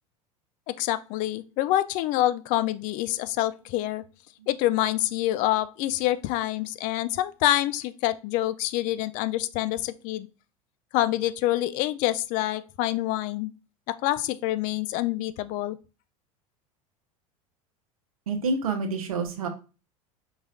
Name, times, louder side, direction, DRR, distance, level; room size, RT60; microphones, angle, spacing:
voice 1, 0.7-4.0 4.5-10.3 10.9-13.5 13.9-15.8, left 15 dB, 45° left, 0.4 m, -26 dB
voice 2, 18.3-19.5, right 4 dB, 75° right, 0.7 m, -28 dB
4.7 x 4.1 x 2.4 m
figure-of-eight pair, 75°, 18 cm